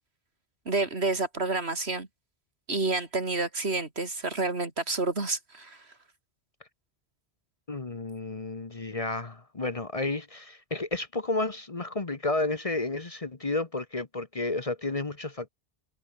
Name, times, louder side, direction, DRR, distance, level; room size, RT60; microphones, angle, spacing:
voice 1, 0.6-2.1 2.7-5.8, right 3 dB, 70° right, 3.3 m, -29 dB
voice 2, 7.7-15.5, left 2 dB, 35° left, 1.2 m, -31 dB
omnidirectional pair, 1.1 m